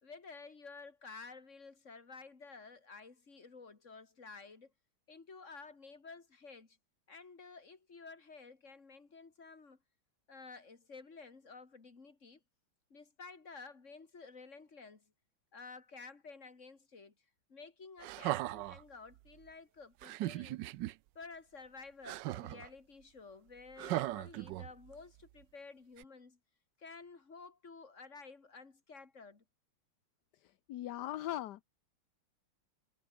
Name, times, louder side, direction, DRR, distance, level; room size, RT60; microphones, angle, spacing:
voice 1, 0.0-4.7 5.1-6.8 7.1-9.8 10.3-12.4 12.9-15.1 15.5-17.1 17.5-20.6 21.1-26.4 26.8-29.4, left 4 dB, 35° left, 2.9 m, -52 dB
sound 1, 18.0-18.8 20.0-20.9 22.0-22.7 23.8-24.9 26.0-26.1, right 16 dB, 75° right, 1.0 m, -38 dB
voice 2, 30.4-31.6, left 13 dB, 65° left, 1.1 m, -40 dB
omnidirectional pair, 2.3 m